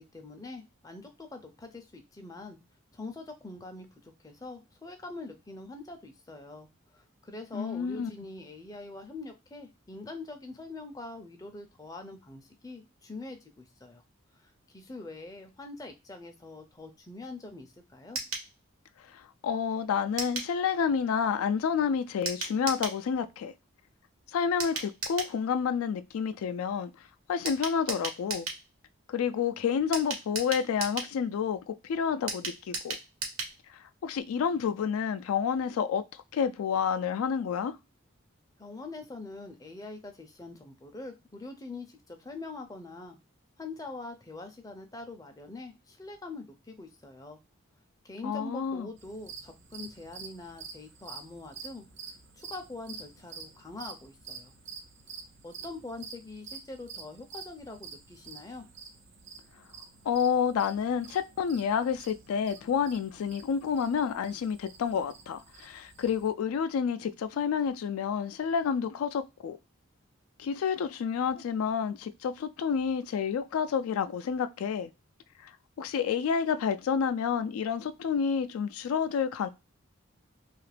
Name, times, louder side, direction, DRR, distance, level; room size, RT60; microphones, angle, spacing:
voice 1, 0.0-2.6 2.9-6.7 6.9-14.0 14.3-18.2 38.6-43.2 43.6-47.4 48.0-54.5 55.4-58.7, left 2 dB, 15° left, 0.4 m, -44 dB
voice 2, 7.5-8.1 19.1-23.5 24.3-26.9 27.3-28.5 29.1-33.0 33.7-36.0 36.3-37.8 48.2-48.9 60.1-69.6 70.4-74.9 75.4-75.5 75.8-79.5, left 7 dB, 85° left, 0.3 m, -29 dB
sound 1, 18.1-18.5 20.2-20.5 22.3-23.0 24.6-25.3 27.5-28.6 29.9-31.1 32.3-33.6 33.9-34.0 34.2-34.3, right 4 dB, 90° right, 1.0 m, -35 dB
sound 2, 49.0-66.3, right 5 dB, 60° right, 0.6 m, -48 dB
2.8 x 2.4 x 3.2 m
head